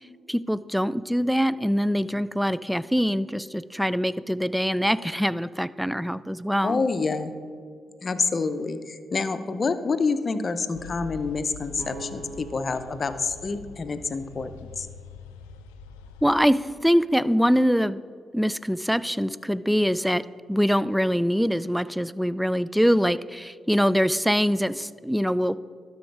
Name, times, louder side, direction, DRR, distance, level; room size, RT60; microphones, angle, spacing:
voice 1, 0.3-6.8 16.2-18.0 18.3-20.2 20.5-25.6, equal, ahead, 17 dB, 0.3 m, -23 dB
voice 2, 6.6-7.3 8.0-14.5 14.8-14.9, left 4 dB, 45° left, 10 dB, 0.6 m, -27 dB
sound 1, 10.7-16.5, left 5 dB, 90° left, 0.4 m, -44 dB
sound 2, 11.8-15.6, right 1 dB, 35° right, 1.6 m, -45 dB
12.0 x 4.9 x 4.5 m, 2.1 s
hypercardioid pair, 45°, 0 cm